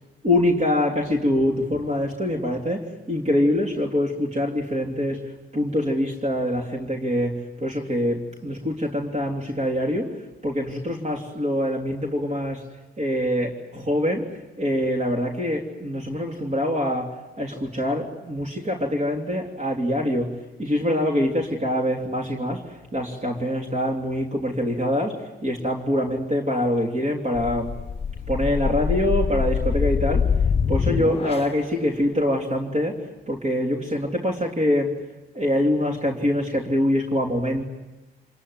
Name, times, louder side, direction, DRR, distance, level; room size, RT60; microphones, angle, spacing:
voice 1, 0.2-10.2 10.4-12.6 13.0-27.8 28.3-30.3 30.7-34.9 35.3-37.6, left 1 dB, 35° right, 1 dB, 3.2 m, -24 dB
sound 1, 27.3-31.7, left 6 dB, 30° left, 1.0 m, -24 dB
27.0 x 21.0 x 9.6 m, 1.1 s
cardioid pair, 90°, 20 cm